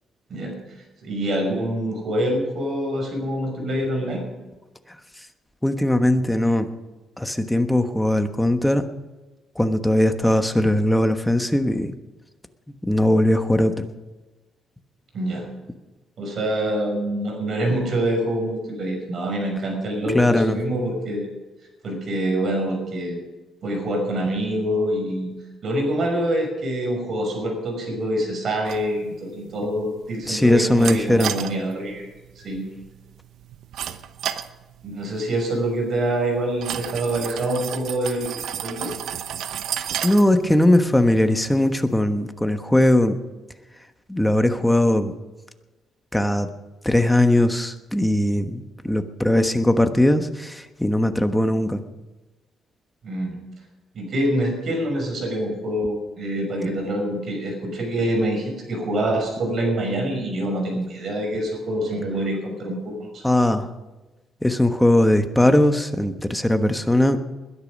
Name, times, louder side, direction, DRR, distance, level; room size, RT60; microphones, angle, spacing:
voice 1, 1.0-4.2 15.1-15.5 16.2-21.3 21.8-23.2 23.6-25.3 25.6-32.1 32.4-32.7 34.8-38.9 53.0-53.4 53.9-63.2, right 1 dB, 50° right, 3 dB, 5.9 m, -25 dB
voice 2, 5.6-6.7 7.2-8.8 9.6-11.9 12.8-13.9 20.1-20.6 30.3-31.3 40.0-43.2 44.1-45.1 46.1-46.5 46.8-51.8 63.2-63.7 64.4-67.2, left 1 dB, 5° left, 7 dB, 1.2 m, -19 dB
sound 1, 28.7-42.0, right 9 dB, 75° right, 0.9 m, -34 dB
21.0 x 10.5 x 5.3 m, 1.1 s
cardioid pair, 125°, 0 cm